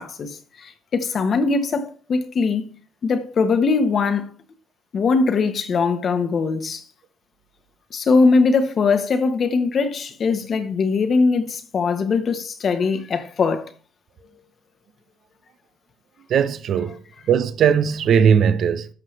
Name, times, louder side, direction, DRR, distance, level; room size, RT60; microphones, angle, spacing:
voice 1, 0.0-2.7 3.0-4.3 4.9-6.8 7.9-13.7, left 4 dB, 50° left, 1.2 m, -21 dB
voice 2, 16.3-18.9, right 7 dB, 60° right, 0.7 m, -19 dB
13.0 x 5.8 x 3.3 m
supercardioid pair, 80°, 0 cm